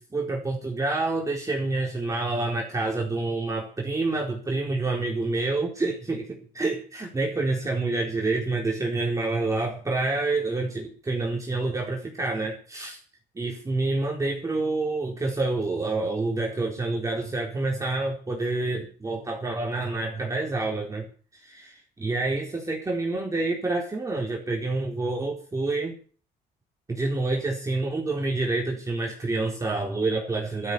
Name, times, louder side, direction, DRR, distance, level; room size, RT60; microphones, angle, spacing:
voice 1, 0.0-13.0 13.3-21.1 21.4-26.0 26.9-30.7, right 2 dB, 20° right, -1 dB, 4.1 m, -28 dB
13.0 x 12.5 x 6.9 m, 0.42 s
cardioid pair, 110°, 17 cm